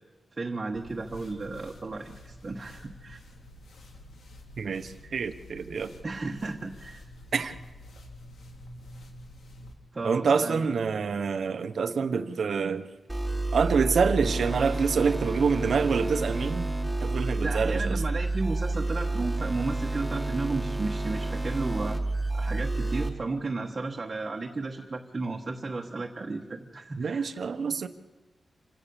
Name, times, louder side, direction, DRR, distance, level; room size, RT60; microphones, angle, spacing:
voice 1, 0.4-3.2 6.0-7.0 9.9-10.7 17.4-22.0 22.3-27.3, right 3 dB, 30° right, 0 dB, 1.3 m, -33 dB
sound 1, 0.7-9.7, left 1 dB, 75° left, 2.7 m, -48 dB
voice 2, 4.6-5.9 7.3-7.6 10.0-12.9 13.5-16.7 17.0-18.0 27.0-27.9, right 5 dB, 60° right, 10 dB, 1.0 m, -26 dB
sound 2, 13.1-23.1, right 2 dB, 5° right, 1.9 m, -30 dB
26.5 x 16.5 x 7.0 m, 1.2 s
wide cardioid pair, 160°, 0 cm